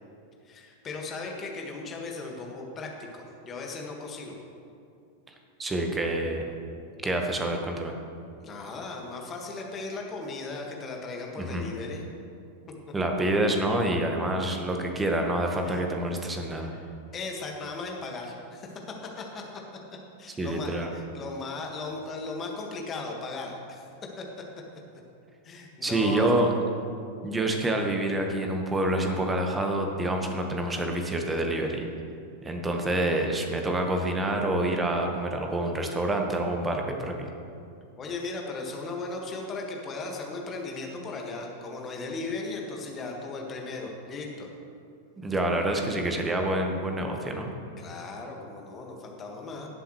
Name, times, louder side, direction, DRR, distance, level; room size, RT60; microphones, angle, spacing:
voice 1, 0.5-4.3 8.4-12.0 15.6-15.8 16.6-18.7 19.2-19.4 20.2-23.9 24.2-24.3 25.4-26.3 38.0-44.5 47.8-49.7, left 3 dB, 25° left, 0 dB, 1.8 m, -37 dB
voice 2, 5.6-6.4 7.0-8.0 11.4-11.6 12.9-16.7 20.4-20.9 25.8-26.5 27.2-31.9 32.4-37.3 45.2-47.5, right 1 dB, 15° right, 3 dB, 1.4 m, -27 dB
17.5 x 7.8 x 3.2 m, 2.4 s
figure-of-eight pair, 90°, 0 cm